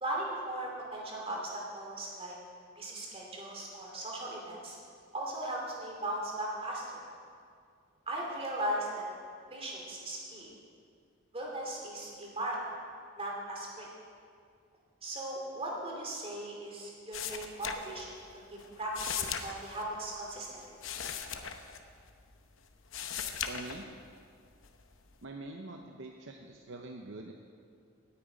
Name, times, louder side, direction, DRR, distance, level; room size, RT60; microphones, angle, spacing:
voice 1, 0.0-2.4 2.8-4.8 5.1-6.8 8.1-9.0 9.5-10.5 11.3-12.6 13.2-13.9 15.0-18.2 18.8-20.6, right 1 dB, 25° right, -2 dB, 2.7 m, -38 dB
sound 1, 17.1-18.3 18.6-22.4 22.7-24.2 24.6-25.2, left 8 dB, 65° left, 0.8 m, -39 dB
voice 2, 23.5-23.9 25.2-27.3, right 2 dB, 55° right, 3 dB, 0.7 m, -44 dB
17.5 x 8.9 x 5.1 m, 2.3 s
head